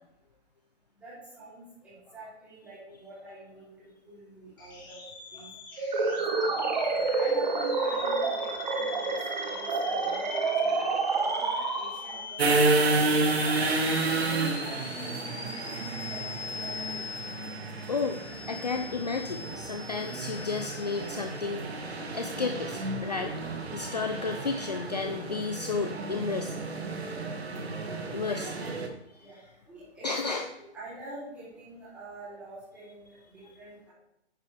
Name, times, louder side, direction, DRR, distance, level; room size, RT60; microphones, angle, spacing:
voice 1, 1.0-5.0 5.3-5.5 6.0-6.5 7.1-12.7 13.4-15.2 15.5-16.2 16.6-17.2 28.3-28.8 29.2-29.4 29.7-33.9, right 1 dB, 5° right, -11 dB, 3.3 m, -45 dB
sound 1, 4.6-21.3, left 4 dB, 20° left, 1.4 m, -42 dB
sound 2, 5.8-12.3, right 4 dB, 40° right, 1.4 m, -28 dB
sound 3, 12.4-28.9, right 3 dB, 60° right, 2.0 m, -31 dB
voice 2, 17.9-23.3 23.7-26.6 28.1-28.5 30.0-30.5, left 4 dB, 35° left, 6 dB, 0.6 m, -32 dB
10.5 x 9.8 x 3.4 m, 0.85 s
hypercardioid pair, 175°, 35 cm